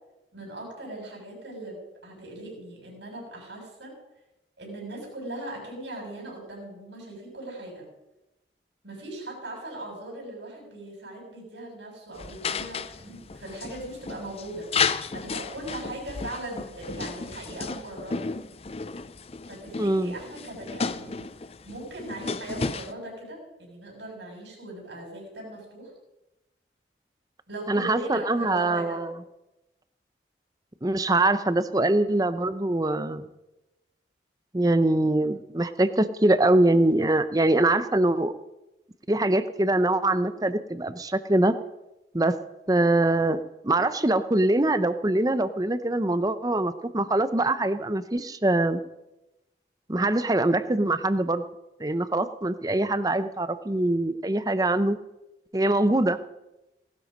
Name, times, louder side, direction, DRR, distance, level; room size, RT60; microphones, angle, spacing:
voice 1, 0.3-4.0 4.6-7.9 8.8-14.7 15.1-18.3 19.5-21.3 21.6-25.9 27.5-29.0, right 1 dB, 80° right, 0 dB, 7.0 m, -39 dB
sound 1, 12.2-22.9, left 5 dB, 35° left, 0.5 m, -33 dB
voice 2, 19.8-20.1 27.7-29.1 30.8-33.2 34.5-38.3 39.1-41.5 42.1-42.4 42.7-48.8 49.9-51.4 51.8-55.0 55.5-56.2, right 2 dB, 20° right, 12 dB, 0.7 m, -23 dB
18.0 x 12.5 x 5.3 m, 0.96 s
head